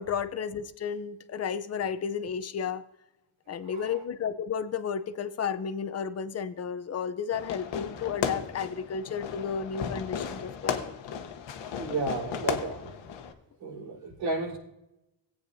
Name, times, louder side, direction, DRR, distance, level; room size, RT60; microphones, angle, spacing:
voice 1, 0.0-2.8 3.5-11.0, left 7 dB, 35° left, 12 dB, 0.6 m, -33 dB
Fireworks, 7.3-13.3, left 7 dB, 85° left, 1.2 m, -35 dB
voice 2, 11.6-13.0 13.6-14.6, right 3 dB, 90° right, -4 dB, 4.0 m, -33 dB
18.0 x 8.9 x 2.7 m, 0.90 s
cardioid pair, 120°, 44 cm